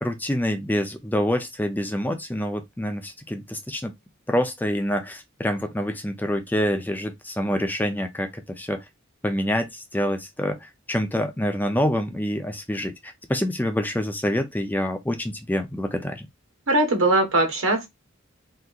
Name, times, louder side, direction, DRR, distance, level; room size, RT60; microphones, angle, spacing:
voice 1, 0.0-3.9 4.3-8.8 9.2-16.3, equal, 10° left, 0.4 m, -26 dB
voice 2, 16.7-17.9, right 2 dB, 85° right, 1.2 m, -20 dB
3.4 x 2.8 x 2.3 m
head